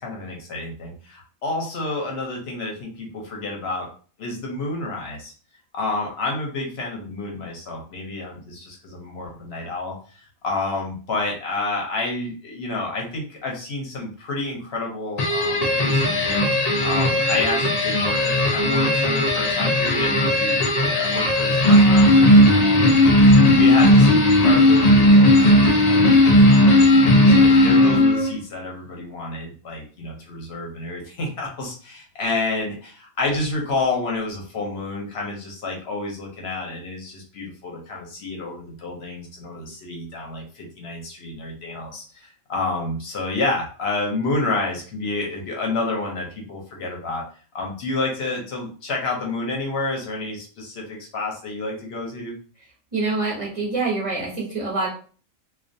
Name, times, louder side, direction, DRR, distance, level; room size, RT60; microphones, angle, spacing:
voice 1, 0.0-3.9 4.2-5.3 5.7-9.9 10.4-16.5 16.8-23.1 23.4-47.2 47.5-52.3, left 2 dB, 55° left, -1 dB, 0.8 m, -29 dB
sound 1, 15.2-28.3, left 1 dB, 90° left, 0.3 m, -16 dB
voice 2, 52.9-54.9, right 3 dB, 35° right, -5 dB, 0.6 m, -25 dB
2.4 x 2.3 x 2.5 m, 0.41 s
omnidirectional pair, 1.4 m